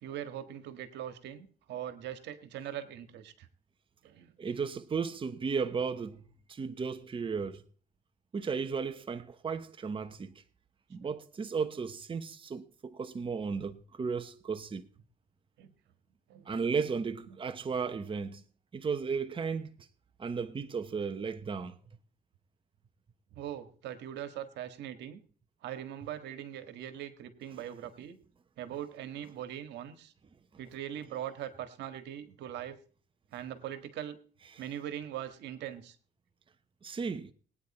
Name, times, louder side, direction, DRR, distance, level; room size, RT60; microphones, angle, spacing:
voice 1, 0.0-3.5 4.0-4.3 11.0-11.1 15.6-15.7 16.3-16.5 23.3-25.2 25.6-28.2 28.6-30.1 30.6-32.8 33.3-34.2 34.6-36.0, right 11 dB, 80° right, 1.7 m, -41 dB
voice 2, 4.4-6.2 6.5-7.6 8.3-10.3 10.9-14.8 16.5-18.4 18.7-19.7 20.2-21.8 34.5-34.6 36.8-37.3, right 5 dB, 30° right, 1.0 m, -34 dB
20.0 x 9.5 x 4.3 m
cardioid pair, 100°, 18 cm